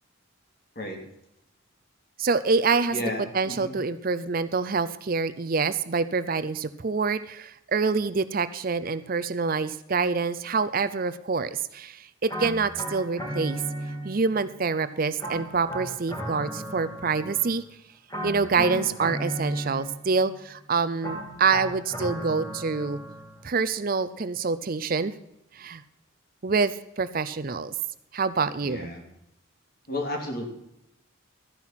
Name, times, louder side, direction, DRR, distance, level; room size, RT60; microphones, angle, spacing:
voice 1, 2.2-3.0 3.3-13.6 14.0-17.6 18.2-23.0 23.4-25.1 25.5-25.8 26.4-27.7 28.1-28.9, right 4 dB, 45° right, 14 dB, 0.5 m, -26 dB
voice 2, 2.9-3.7 18.6-18.9 28.6-29.1 29.9-30.5, left 1 dB, 45° left, 3 dB, 2.7 m, -33 dB
sound 1, 12.3-14.4 15.2-17.6 18.1-20.2 21.0-23.4, right 1 dB, 15° left, 3.2 m, -35 dB
13.5 x 10.5 x 5.8 m, 0.81 s
head